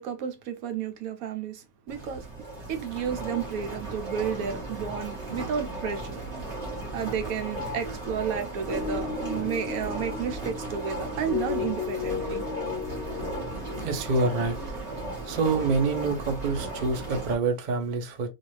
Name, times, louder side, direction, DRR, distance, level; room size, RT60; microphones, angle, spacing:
voice 1, 0.0-2.3 2.7-6.2 6.9-12.5, right 7 dB, 75° right, 1.0 m, -32 dB
sound 1, 1.9-17.4, right 2 dB, 30° right, 1.0 m, -36 dB
sound 2, 8.7-13.8, left 7 dB, 60° left, 0.5 m, -34 dB
voice 2, 13.8-14.9 15.2-18.3, right 4 dB, 55° right, 0.5 m, -27 dB
2.6 x 2.3 x 3.0 m
omnidirectional pair, 1.6 m